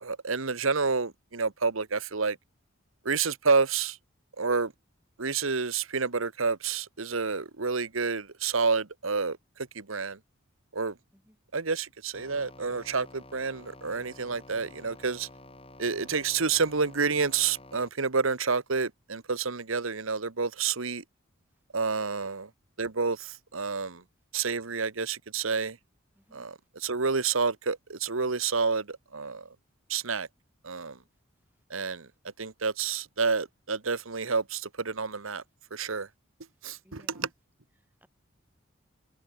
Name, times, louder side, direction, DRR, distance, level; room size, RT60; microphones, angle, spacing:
voice 1, 0.0-2.4 3.0-4.0 4.4-4.7 5.2-10.2 10.7-11.0 11.5-15.3 15.8-21.0 21.7-22.5 22.8-24.0 24.3-25.8 26.3-29.5 29.9-30.3 30.6-31.0 31.7-32.1 32.4-35.4 35.7-36.1 36.6-37.3, right 5 dB, 85° right, 1.4 m, -29 dB
sound 1, 12.1-17.9, left 1 dB, 25° left, 7.9 m, -50 dB
voice 2, 26.2-26.5 36.8-37.3 37.8-38.1, equal, 10° right, 5.9 m, -61 dB
head